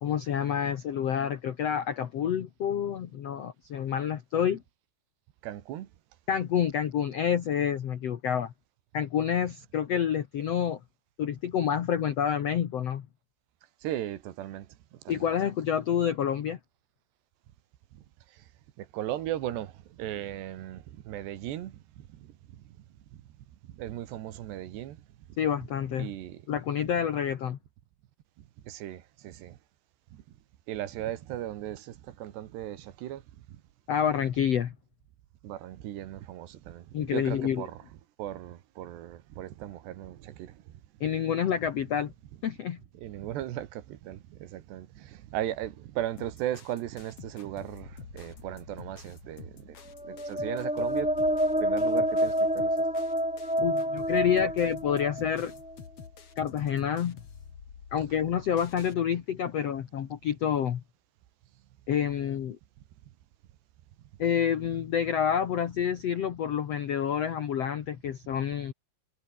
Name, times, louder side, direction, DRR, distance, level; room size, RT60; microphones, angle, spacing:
voice 1, 0.0-4.6 6.3-8.5 8.9-10.8 11.2-13.0 15.1-16.6 25.4-26.1 26.5-27.6 33.9-34.7 36.9-37.6 41.0-42.1 42.4-42.8 53.6-55.5 56.4-57.2 57.9-60.8 61.9-62.6 64.2-68.7, left 8 dB, 75° left, 1.4 m, -28 dB
voice 2, 5.4-5.9 13.8-14.7 15.1-15.3 18.8-19.7 20.0-22.3 23.7-25.0 26.0-26.4 28.7-29.6 30.7-33.2 35.4-37.8 38.2-40.6 43.0-49.8 50.0-51.1 51.6-52.7, right 12 dB, 75° right, 3.7 m, -37 dB
sound 1, 46.2-59.0, left 7 dB, 40° left, 2.7 m, -48 dB
sound 2, 50.0-55.7, equal, 5° right, 0.5 m, -28 dB
omnidirectional pair, 5.0 m